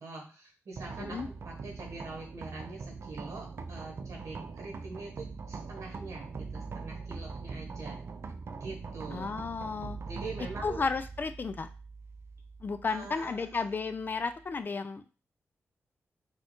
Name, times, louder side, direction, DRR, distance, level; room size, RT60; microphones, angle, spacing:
voice 1, 0.0-8.0 8.6-9.3 10.1-10.8 12.9-13.6, right 3 dB, 80° right, 0 dB, 1.0 m, -44 dB
sound 1, 0.7-14.6, right 4 dB, 50° right, 0.4 m, -42 dB
voice 2, 1.0-1.3 9.1-10.0 10.6-11.7 12.6-15.0, left 4 dB, 40° left, 10 dB, 0.3 m, -33 dB
4.2 x 2.3 x 3.0 m, 0.34 s
wide cardioid pair, 100°, 5 cm